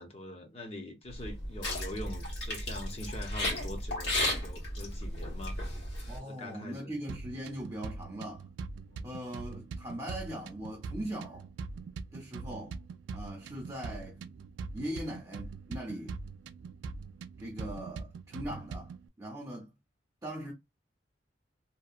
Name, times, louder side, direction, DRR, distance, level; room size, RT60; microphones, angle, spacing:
voice 1, 0.0-5.7 6.2-6.9 8.9-9.2, left 1 dB, 35° left, 0.6 m, -44 dB
sound 1, 1.1-6.2, left 1 dB, 70° left, 1.3 m, -34 dB
voice 2, 6.1-8.5 9.0-11.5 12.1-12.8 13.1-14.3 14.7-16.2 17.4-19.7 20.2-20.5, right 1 dB, 20° right, 0.6 m, -40 dB
sound 2, 7.1-19.1, right 4 dB, 90° right, 0.3 m, -43 dB
2.7 x 2.2 x 2.4 m
head